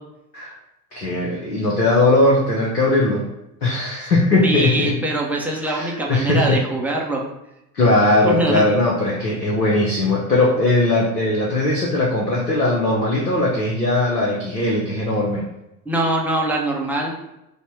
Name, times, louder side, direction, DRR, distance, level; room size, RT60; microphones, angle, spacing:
voice 1, 0.9-3.2 3.6-4.9 5.6-6.6 7.7-15.4, left 2 dB, 85° left, -3 dB, 0.9 m, -19 dB
voice 2, 4.4-7.2 8.2-8.6 15.9-17.1, right 1 dB, 5° right, -3 dB, 0.4 m, -23 dB
5.3 x 2.1 x 4.4 m, 0.90 s
figure-of-eight pair, 75°, 47 cm